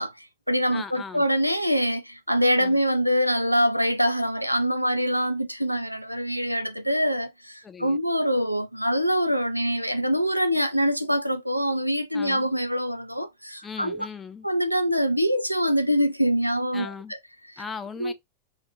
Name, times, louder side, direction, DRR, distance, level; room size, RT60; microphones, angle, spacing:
voice 1, 0.0-14.0 14.4-16.9 18.0-18.1, equal, 90° right, 0.4 m, -24 dB
voice 2, 0.7-1.3 2.6-2.8 7.6-8.0 12.1-12.5 13.6-14.5 16.7-17.1 17.6-18.1, left 5 dB, 15° left, 0.4 m, -38 dB
2.5 x 2.3 x 2.9 m
figure-of-eight pair, 90°, 0 cm